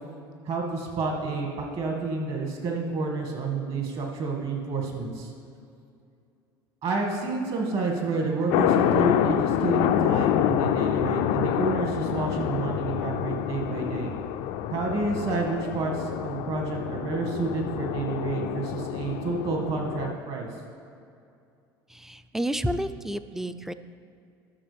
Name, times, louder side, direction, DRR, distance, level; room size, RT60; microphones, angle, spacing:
voice 1, 0.5-5.3 6.8-14.1 14.7-20.5, right 3 dB, 50° right, 0 dB, 2.0 m, -29 dB
sound 1, 8.5-20.1, left 10 dB, 65° left, 0.4 m, -27 dB
voice 2, 21.9-23.7, equal, 5° right, 11 dB, 0.4 m, -30 dB
12.5 x 6.6 x 3.5 m, 2.4 s
hypercardioid pair, 75°, 12 cm